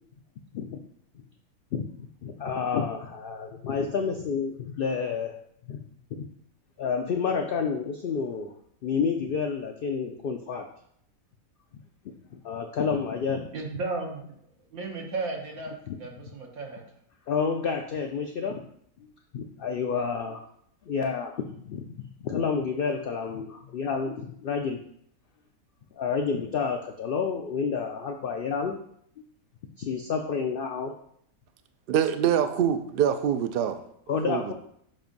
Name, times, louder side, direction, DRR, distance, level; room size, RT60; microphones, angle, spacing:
voice 1, 1.7-5.3 5.7-5.8 6.1-6.3 6.8-8.5 8.8-10.7 12.3-13.5 15.9-16.0 17.3-18.6 19.3-20.4 20.8-24.8 25.9-28.8 29.8-30.9 34.1-34.5, left 5 dB, 70° left, 4 dB, 0.5 m, -29 dB
voice 2, 13.5-14.2 14.7-16.8, right 3 dB, 80° right, 1 dB, 1.6 m, -34 dB
voice 3, 31.9-33.8 34.3-34.5, right 9 dB, 65° right, 8 dB, 0.5 m, -24 dB
7.4 x 2.6 x 5.2 m, 0.69 s
omnidirectional pair, 1.5 m